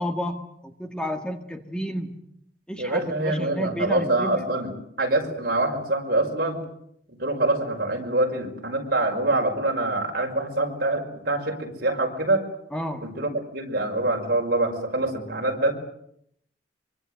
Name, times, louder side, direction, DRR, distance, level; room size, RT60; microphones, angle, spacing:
voice 1, 0.0-2.2 2.7-4.4 12.7-13.1, equal, 5° left, 5 dB, 1.7 m, -31 dB
voice 2, 2.8-6.6 7.1-12.4 13.0-15.7, right 2 dB, 55° right, 2 dB, 5.6 m, -25 dB
24.5 x 24.5 x 8.0 m, 0.72 s
head